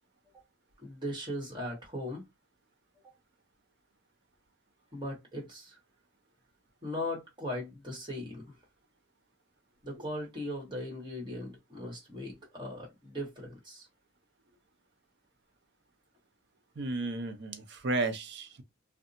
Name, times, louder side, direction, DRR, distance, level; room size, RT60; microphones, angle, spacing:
voice 1, 0.8-2.2 3.0-3.1 4.9-5.8 6.8-8.5 9.8-13.9, left 1 dB, 25° right, 1.3 m, -38 dB
voice 2, 16.8-18.6, right 2 dB, 55° right, 0.6 m, -33 dB
2.7 x 2.2 x 2.5 m
head